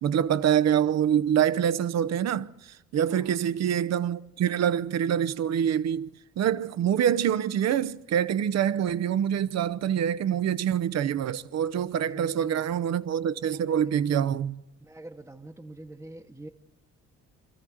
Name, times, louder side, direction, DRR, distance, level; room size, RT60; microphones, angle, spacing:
voice 1, 0.0-6.1 6.4-14.6, right 9 dB, 60° right, 0.7 m, -25 dB
voice 2, 3.1-3.4 11.9-12.6 13.5-14.2 14.8-16.5, right 1 dB, 10° right, 1.0 m, -46 dB
25.5 x 13.5 x 7.8 m
cardioid pair, 90°, 30 cm